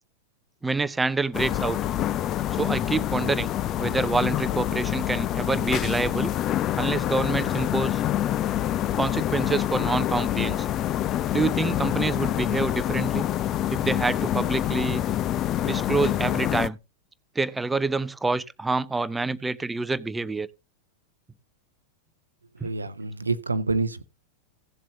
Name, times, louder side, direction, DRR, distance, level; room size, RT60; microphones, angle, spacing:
voice 1, 0.6-1.8 2.5-3.5 3.8-6.3 6.8-8.0 8.9-10.7 11.3-13.3 13.7-15.0 15.6-16.8 17.4-20.5 22.6-22.7, right 3 dB, 10° right, 0.7 m, -27 dB
sound 1, 1.3-16.7, left 12 dB, 30° left, 0.5 m, -26 dB
voice 2, 22.6-24.0, right 3 dB, 80° right, 0.7 m, -27 dB
17.0 x 7.5 x 2.7 m
figure-of-eight pair, 90°, 0 cm